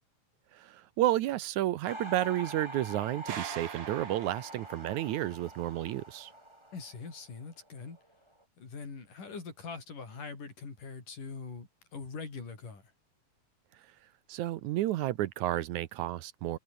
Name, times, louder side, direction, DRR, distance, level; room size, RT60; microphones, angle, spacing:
voice 1, 0.5-6.3 14.3-16.6, right 14 dB, 75° right, 2.1 m, -31 dB
sound 1, 1.9-7.7 8.0-8.4, right 1 dB, 10° right, 4.3 m, -45 dB
sound 2, 3.3-5.2, right 8 dB, 50° right, 2.7 m, -43 dB
voice 2, 6.7-8.0 8.6-12.8, left 4 dB, 75° left, 7.3 m, -43 dB
omnidirectional pair, 3.7 m